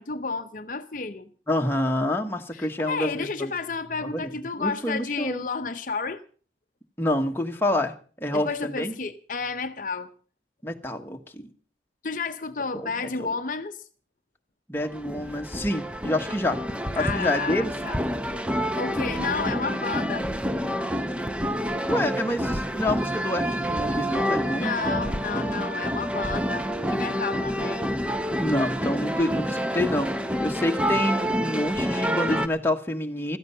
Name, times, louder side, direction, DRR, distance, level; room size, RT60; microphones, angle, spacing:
voice 1, 0.0-1.3 2.5-6.2 8.3-10.1 12.0-13.9 17.0-18.0 18.8-20.3 24.5-27.9, left 4 dB, 45° left, 0.7 m, -31 dB
voice 2, 1.5-3.5 4.0-4.3 4.6-5.4 7.0-8.9 10.6-11.5 12.7-13.3 14.7-16.6 16.9-17.7 21.9-24.8 28.4-30.1 30.4-33.4, left 1 dB, 10° left, 1.3 m, -27 dB
sound 1, 14.8-32.5, equal, 5° right, 0.7 m, -28 dB
16.0 x 13.5 x 5.6 m
head